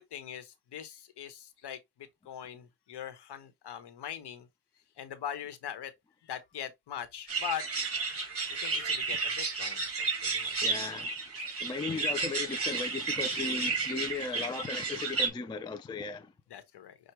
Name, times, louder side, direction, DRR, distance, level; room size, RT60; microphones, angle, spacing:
voice 1, 0.0-4.5 5.0-5.9 6.2-7.7 8.3-10.6 16.5-17.0, left 9 dB, 50° left, 1.1 m, -41 dB
sound 1, 7.3-15.3, right 4 dB, 25° right, 2.0 m, -32 dB
voice 2, 10.6-11.2 11.6-16.3, left 4 dB, 10° left, 0.3 m, -36 dB
6.0 x 2.4 x 3.1 m
supercardioid pair, 80°, 50 cm